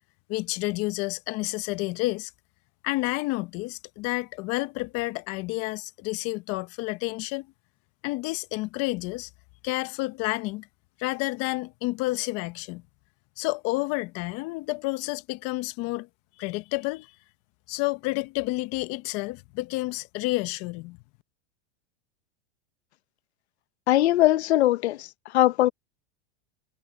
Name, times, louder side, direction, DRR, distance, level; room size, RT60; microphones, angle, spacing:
voice 1, 0.3-2.3 2.8-7.5 8.0-9.3 9.6-10.7 11.0-12.8 13.4-16.1 16.4-17.1 17.7-21.0, left 21 dB, 45° left, 1.2 m, -30 dB
voice 2, 23.9-25.1 25.3-25.7, left 15 dB, 75° left, 1.3 m, -20 dB
supercardioid pair, 125°, 33 cm